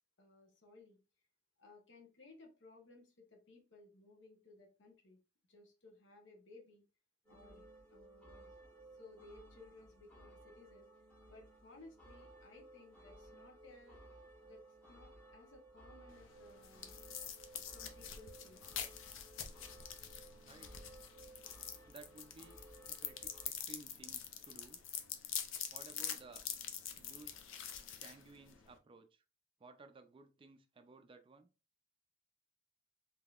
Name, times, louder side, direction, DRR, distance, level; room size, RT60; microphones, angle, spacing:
voice 1, 0.2-1.0 1.6-5.2 5.5-6.8 7.3-7.6 7.9-8.5 8.9-10.9 11.3-14.0 14.4-14.6 14.9-16.9 17.5-18.6, left 2 dB, 65° left, 1.0 m, -60 dB
sound 1, 7.2-23.5, right 1 dB, 5° left, 1.0 m, -59 dB
sound 2, 16.1-28.8, left 8 dB, 90° left, 0.5 m, -46 dB
voice 2, 20.4-20.9 21.8-24.8 25.7-26.5 27.0-27.5 27.9-29.2 29.6-31.5, right 3 dB, 25° right, 0.3 m, -57 dB
3.6 x 2.7 x 2.4 m
head